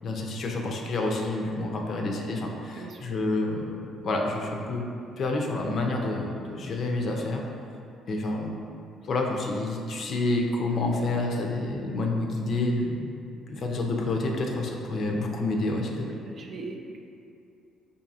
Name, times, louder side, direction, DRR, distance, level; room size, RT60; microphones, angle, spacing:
voice 1, 0.0-3.7 4.0-4.9 5.2-7.4 8.1-8.7 9.0-13.1 13.5-16.1, left 2 dB, 50° left, 1 dB, 0.5 m, -28 dB
voice 2, 16.0-17.0, right 3 dB, 45° right, 1 dB, 0.4 m, -40 dB
4.8 x 2.7 x 2.7 m, 2.5 s
cardioid pair, 110°, 0 cm